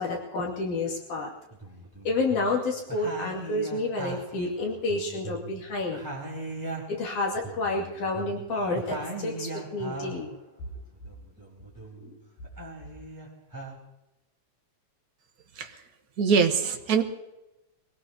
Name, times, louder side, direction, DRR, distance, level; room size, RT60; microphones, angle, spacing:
voice 1, 0.0-1.3 2.0-6.0 6.9-10.3 12.0-12.2, left 2 dB, 75° left, -2 dB, 3.9 m, -29 dB
sound 1, 0.8-0.9 1.5-2.6 2.9-5.6 5.9-10.3 10.7-12.1 12.4-13.7, right 2 dB, 5° right, 3.6 m, -39 dB
voice 2, 16.2-17.0, right 6 dB, 60° right, 4 dB, 0.9 m, -23 dB
23.0 x 18.0 x 2.9 m, 0.95 s
omnidirectional pair, 3.5 m